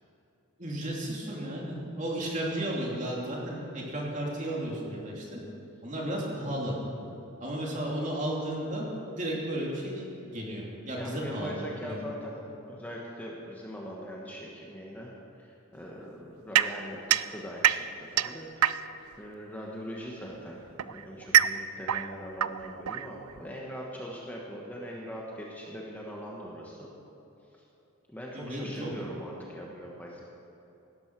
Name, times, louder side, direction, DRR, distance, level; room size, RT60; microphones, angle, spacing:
voice 1, 0.6-5.4 5.8-6.8 7.4-8.9 9.1-12.1 28.3-28.9, right 1 dB, 35° right, -3 dB, 2.9 m, -34 dB
voice 2, 10.9-12.4 12.7-15.1 15.4-18.6 19.2-26.9 28.1-30.2, equal, 10° left, -3 dB, 1.3 m, -41 dB
sound 1, 16.5-19.1 20.2-23.5, right 10 dB, 90° right, 0.4 m, -27 dB
17.0 x 12.5 x 4.7 m, 3.0 s
head